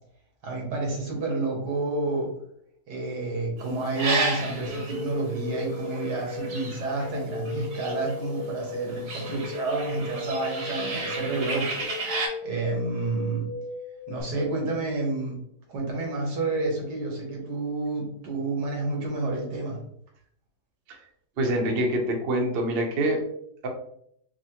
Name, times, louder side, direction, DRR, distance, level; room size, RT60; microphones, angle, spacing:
voice 1, 0.4-2.3 2.9-11.8 12.4-13.5 14.1-15.4 15.7-19.8, right 2 dB, 85° right, -1 dB, 1.8 m, -29 dB
sound 1, 3.6-8.4 8.6-12.3, right 3 dB, 70° right, 1.3 m, -33 dB
sound 2, 4.7-14.2, left 3 dB, 75° left, 1.2 m, -36 dB
voice 2, 21.4-23.2 23.6-23.7, right 1 dB, 50° right, 1 dB, 0.7 m, -25 dB
4.7 x 2.1 x 2.8 m, 0.69 s
omnidirectional pair, 1.8 m